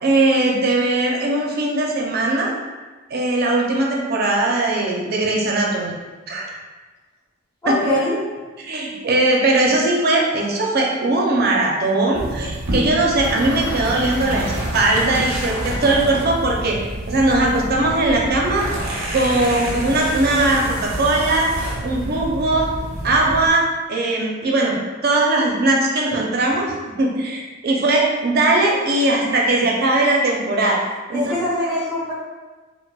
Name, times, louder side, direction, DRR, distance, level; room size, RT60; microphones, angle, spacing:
voice 1, 0.0-2.5 3.1-5.9 6.3-6.5 7.7-7.8 8.6-16.8 17.1-18.7 19.1-21.5 21.8-22.7 23.0-23.6 23.9-24.8 25.0-30.8 31.1-31.3, right 2 dB, 50° right, -1 dB, 0.6 m, -19 dB
voice 2, 7.6-8.2 27.6-27.7 31.1-32.1, left 1 dB, 15° left, -12 dB, 0.8 m, -22 dB
sound 1, 12.1-23.5, right 1 dB, 85° right, 0.7 m, -28 dB
4.7 x 2.1 x 2.3 m, 1.3 s
head